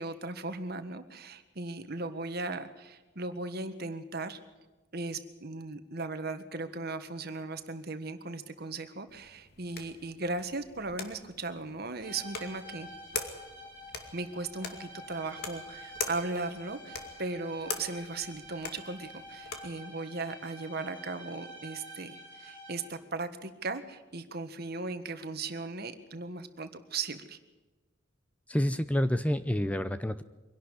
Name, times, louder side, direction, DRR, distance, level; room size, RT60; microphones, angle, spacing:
voice 1, 0.0-4.4 4.9-12.9 14.1-27.4, right 3 dB, 55° right, 10 dB, 1.6 m, -37 dB
sound 1, 9.1-19.8, left 5 dB, 55° left, 2.4 m, -43 dB
sound 2, 12.0-23.1, equal, 25° left, 4.9 m, -48 dB
voice 2, 28.5-30.2, equal, 5° left, 12 dB, 0.6 m, -28 dB
23.5 x 11.5 x 10.0 m, 1.1 s
head